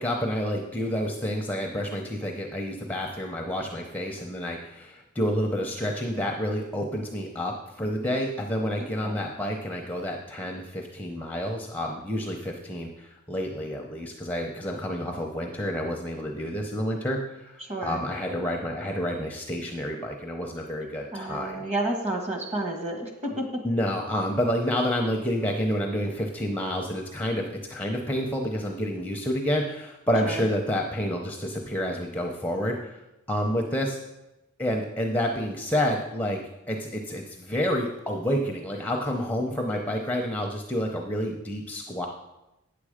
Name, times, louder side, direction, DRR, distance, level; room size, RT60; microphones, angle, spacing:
voice 1, 0.0-21.6 23.3-33.0 33.3-34.0 34.6-36.4 36.7-42.1, equal, 5° left, 1 dB, 0.6 m, -29 dB
voice 2, 8.8-9.2 17.7-18.0 21.1-23.3 30.2-30.4, right 2 dB, 30° right, 2 dB, 1.6 m, -31 dB
8.9 x 7.4 x 5.0 m, 0.95 s
head